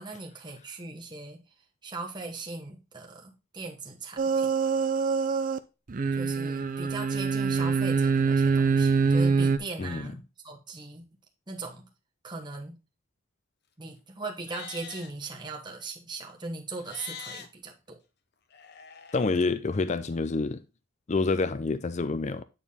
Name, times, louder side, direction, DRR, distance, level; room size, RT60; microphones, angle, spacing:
voice 1, 0.0-1.4 1.8-4.5 6.1-11.1 11.5-11.9 12.2-12.8 13.8-18.0, right 3 dB, 20° right, 1.1 m, -39 dB
sound 1, 4.2-5.6 5.9-9.6, right 5 dB, 40° right, 0.5 m, -25 dB
voice 2, 9.8-10.1 19.1-20.6 21.1-22.4, left 3 dB, 35° left, 0.4 m, -27 dB
Livestock farm animals working animals, 14.4-15.1 16.8-17.5 18.5-19.4, left 6 dB, 50° left, 0.8 m, -44 dB
9.1 x 4.4 x 3.5 m
head